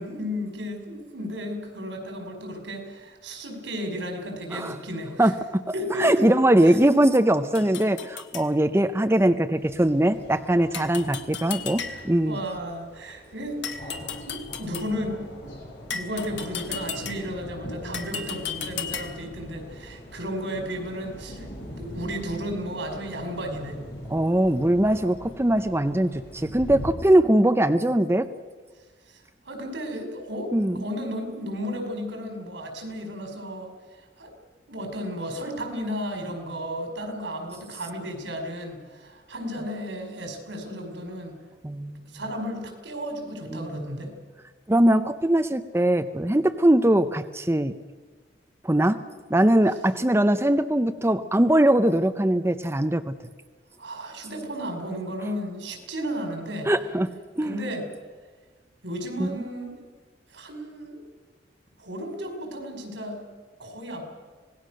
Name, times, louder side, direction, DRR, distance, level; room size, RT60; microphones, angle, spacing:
voice 1, 0.0-5.3 5.7-6.3 6.6-6.8 11.9-13.6 14.3-15.5 15.9-21.4 21.8-23.8 29.5-33.7 34.2-34.3 34.7-41.4 42.1-44.1 53.8-56.7 57.4-57.8 58.8-59.8 60.3-61.0 61.8-63.2 63.6-64.0, equal, 85° right, 4 dB, 5.2 m, -34 dB
voice 2, 5.2-5.6 6.0-12.4 24.1-28.3 30.5-30.8 41.6-42.2 43.5-44.2 44.7-47.7 48.6-49.0 49.3-53.2 56.7-57.1 57.4-57.6 59.2-59.3, right 1 dB, 15° right, 9 dB, 0.6 m, -21 dB
sound 1, 7.5-8.5 10.7-12.3 13.6-15.0 15.9-17.4 17.9-19.3, left 6 dB, 80° left, 1.8 m, -35 dB
sound 2, 9.6-26.9, equal, 60° left, 6.9 m, -42 dB
25.5 x 19.0 x 6.5 m, 1.4 s
head